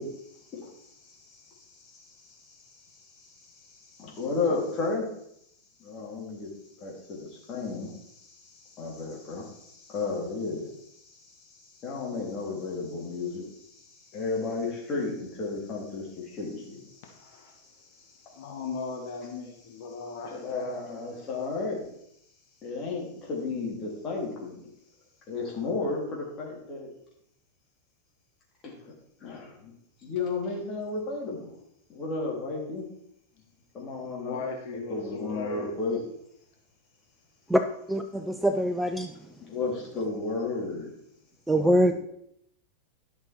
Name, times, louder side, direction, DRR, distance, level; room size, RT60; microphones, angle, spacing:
voice 1, 0.0-5.1 5.8-6.5 6.8-17.3 17.6-18.5 20.3-21.9 22.6-24.6 25.3-26.9 28.6-28.9 29.2-29.7 30.0-31.5 31.9-32.8 33.7-34.4 34.7-36.0 39.5-40.9 41.6-41.9, left 3 dB, 30° left, -2 dB, 3.3 m, -34 dB
voice 2, 17.1-17.5 18.3-20.3 34.2-35.7, left 4 dB, 50° left, 2 dB, 1.3 m, -37 dB
voice 3, 37.9-39.2 41.5-41.9, equal, 5° right, 7 dB, 0.5 m, -23 dB
11.5 x 6.2 x 4.5 m, 0.74 s
figure-of-eight pair, 90°, 0 cm